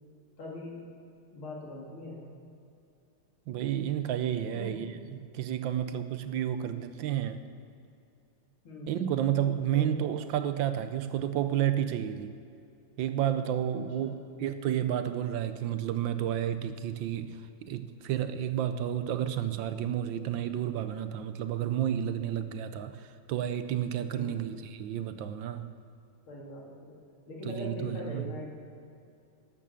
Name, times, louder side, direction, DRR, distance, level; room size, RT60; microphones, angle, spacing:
voice 1, 0.4-0.8 1.3-2.2 4.5-4.8 8.6-9.1 9.7-10.3 14.0-14.1 24.1-24.5 26.3-27.0 27.3-28.5, left 2 dB, 90° left, -3 dB, 3.3 m, -41 dB
voice 2, 3.5-7.4 8.9-12.4 13.0-25.7 27.5-28.4, right 10 dB, 75° right, 10 dB, 1.3 m, -31 dB
12.5 x 8.5 x 7.0 m, 2.5 s
omnidirectional pair, 2.2 m